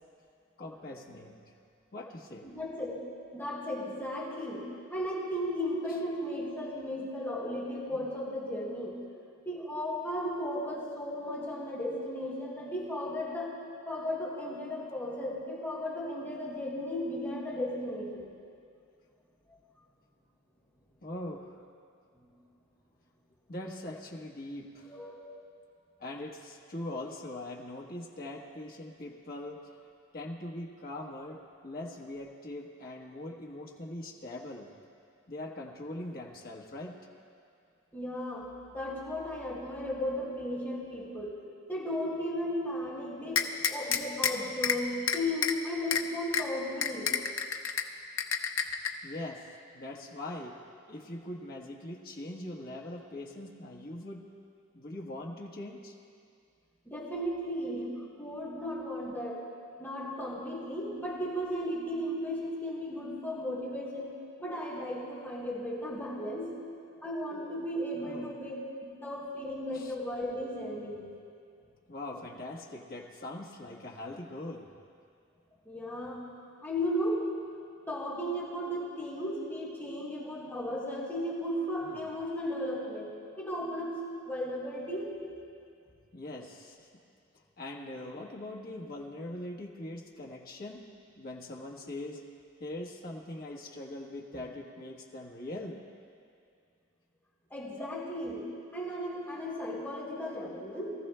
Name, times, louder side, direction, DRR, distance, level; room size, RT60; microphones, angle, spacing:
voice 1, 0.6-1.4 1.9-2.5 21.0-21.5 23.5-25.1 26.0-29.7 30.1-34.7 35.3-37.0 49.0-49.5 49.7-50.6 50.9-54.3 54.7-55.9 68.0-68.3 69.7-69.9 71.9-74.7 81.8-82.1 86.1-86.9 87.6-90.8 91.2-92.2 92.6-95.8, left 1 dB, 45° left, -2 dB, 1.3 m, -42 dB
voice 2, 2.4-2.9 3.3-4.6 4.9-9.0 9.4-13.5 13.8-18.2 22.2-22.3 24.9-25.3 37.9-41.3 41.7-47.1 56.8-59.4 59.8-64.1 64.4-66.5 66.9-68.5 68.8-71.0 75.6-76.2 76.6-77.2 77.9-83.1 83.4-84.0 84.2-85.1 97.5-98.4 98.7-100.9, equal, 10° left, -8 dB, 3.2 m, -35 dB
sound 1, 43.3-44.3 44.6-44.8 45.1-45.5 45.9-46.0 46.3-46.4 46.8-47.8 48.2-48.9, left 7 dB, 65° left, 0.7 m, -28 dB
22.5 x 14.0 x 2.2 m, 2.3 s
head